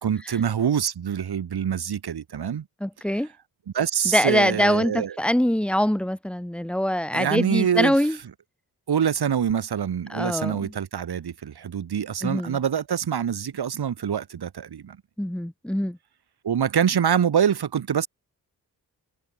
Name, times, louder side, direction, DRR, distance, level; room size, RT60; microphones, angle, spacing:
voice 1, 0.0-2.7 3.7-5.2 7.1-8.0 8.9-15.0 16.4-18.1, right 8 dB, 80° right, 2.0 m, -25 dB
voice 2, 2.8-3.3 4.1-8.2 10.1-10.7 12.2-12.6 15.2-16.0, equal, 5° left, 1.0 m, -23 dB
wide cardioid pair, 75°, 38 cm